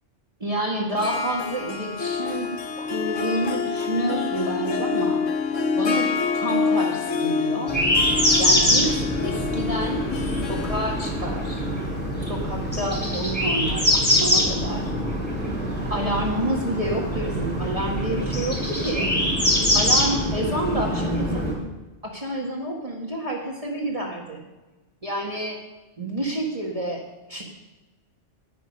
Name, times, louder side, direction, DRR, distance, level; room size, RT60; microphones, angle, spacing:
voice 1, 0.4-2.5 2.8-5.2 5.8-7.8 8.4-8.9 9.2-11.7 12.3-14.9 15.9-19.1 19.7-21.6 22.0-24.4 25.0-25.6 26.0-27.4, right 1 dB, 30° right, -1 dB, 1.7 m, -29 dB
Harp, 1.0-14.5, left 5 dB, 85° left, 1.4 m, -28 dB
sound 1, 7.7-21.5, equal, 10° left, 3.0 m, -24 dB
19.0 x 6.6 x 5.3 m, 1.1 s
omnidirectional pair, 1.2 m